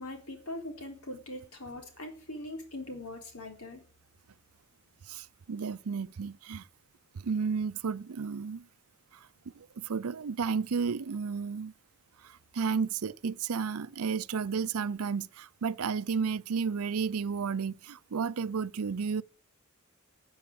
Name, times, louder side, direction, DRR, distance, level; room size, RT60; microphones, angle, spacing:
voice 1, 0.0-3.8, left 1 dB, 80° left, 3.8 m, -41 dB
voice 2, 5.1-6.7 7.2-8.7 9.1-9.3 9.5-11.7 12.2-19.2, right 5 dB, 85° right, 0.5 m, -32 dB
13.5 x 7.2 x 8.8 m
head